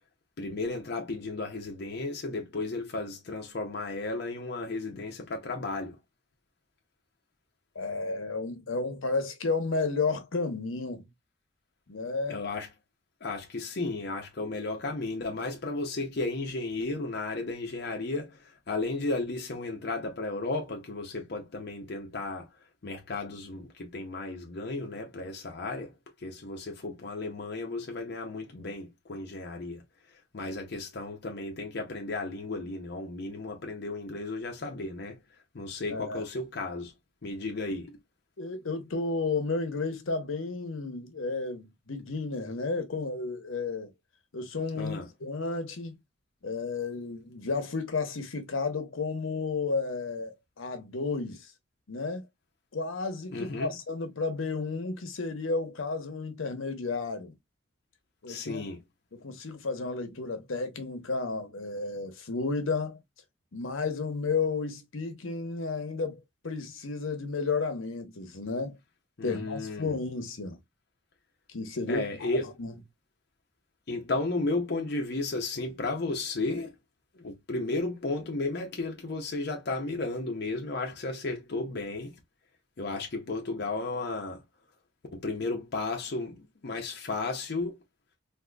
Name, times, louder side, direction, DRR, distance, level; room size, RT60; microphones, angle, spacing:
voice 1, 0.4-6.0 12.3-12.7 13.2-18.3 18.7-22.5 22.8-25.9 26.2-29.8 30.3-35.2 35.5-36.9 37.2-38.0 44.8-45.1 53.3-53.7 58.3-58.8 69.2-69.9 71.9-72.5 73.9-76.7 77.2-82.1 82.8-84.4 85.1-87.7, left 2 dB, 50° left, 0.6 m, -34 dB
voice 2, 7.7-11.1 11.9-12.4 35.9-36.2 38.4-43.9 44.3-45.9 46.4-51.5 51.9-52.2 52.7-57.3 58.2-58.7 59.1-63.0 63.5-68.8 69.2-70.6 71.5-72.3 72.6-72.7, left 4 dB, 80° left, 0.9 m, -32 dB
3.7 x 2.6 x 2.3 m
head